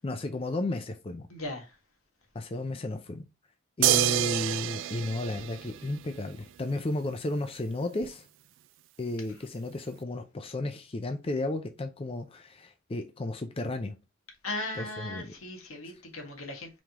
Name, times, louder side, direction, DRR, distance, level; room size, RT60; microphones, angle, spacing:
voice 1, 0.0-1.3 2.3-3.3 3.8-8.3 9.0-14.0 14.8-15.3, left 2 dB, 25° left, 0.5 m, -33 dB
voice 2, 1.3-1.7 14.4-16.8, left 2 dB, 85° left, 1.6 m, -37 dB
sound 1, 3.8-6.3 8.0-8.1, right 13 dB, 60° right, 0.3 m, -28 dB
5.0 x 3.7 x 2.9 m
head